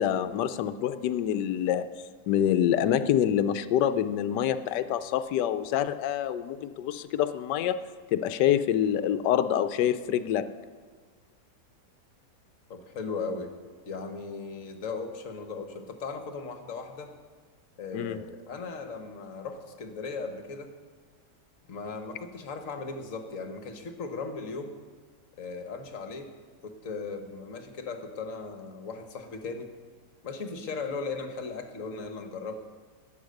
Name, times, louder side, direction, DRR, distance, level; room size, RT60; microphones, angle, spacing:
voice 1, 0.0-1.9 2.3-7.8 8.1-10.4 17.9-18.2, left 10 dB, 85° left, 13 dB, 1.2 m, -26 dB
voice 2, 12.7-13.5 13.9-17.1 17.8-20.7 21.7-24.8 25.4-26.3 26.6-29.7 30.2-32.5, left 4 dB, 55° left, 6 dB, 1.4 m, -37 dB
11.5 x 9.2 x 6.5 m, 1.6 s
omnidirectional pair, 1.8 m